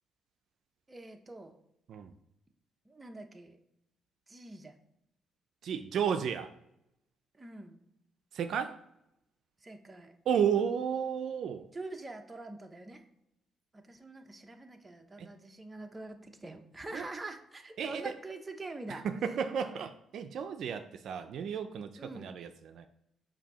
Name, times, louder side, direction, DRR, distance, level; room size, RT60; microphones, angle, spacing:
voice 1, 0.9-1.6 2.9-3.6 4.3-4.7 7.3-7.8 9.6-10.1 11.7-13.0 13.7-19.1 22.0-22.4, right 2 dB, 20° right, 5 dB, 0.7 m, -45 dB
voice 2, 5.6-6.5 8.3-8.8 10.3-11.7 15.2-15.3 16.9-17.0 17.8-18.1 18.9-21.9 22.1-22.9, right 7 dB, 70° right, 8 dB, 0.4 m, -33 dB
7.1 x 2.7 x 5.5 m, 0.80 s
cardioid pair, 90°, 0 cm